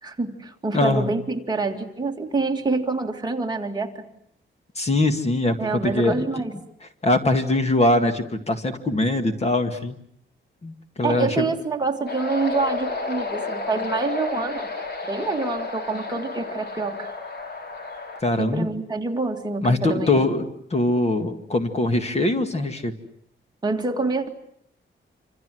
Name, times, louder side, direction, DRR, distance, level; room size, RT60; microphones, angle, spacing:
voice 1, 0.0-4.0 5.6-6.5 11.0-14.7 15.1-17.1 18.4-20.2 23.6-24.3, right 3 dB, 20° right, 2 dB, 2.4 m, -26 dB
voice 2, 0.7-1.1 4.8-6.2 7.0-10.0 10.6-11.5 18.2-18.7 19.6-20.4 20.7-22.9, left 2 dB, 30° left, 7 dB, 2.0 m, -22 dB
sound 1, 12.1-18.2, left 3 dB, 55° left, 4.8 m, -31 dB
27.5 x 27.0 x 7.8 m, 0.68 s
wide cardioid pair, 170°, 20 cm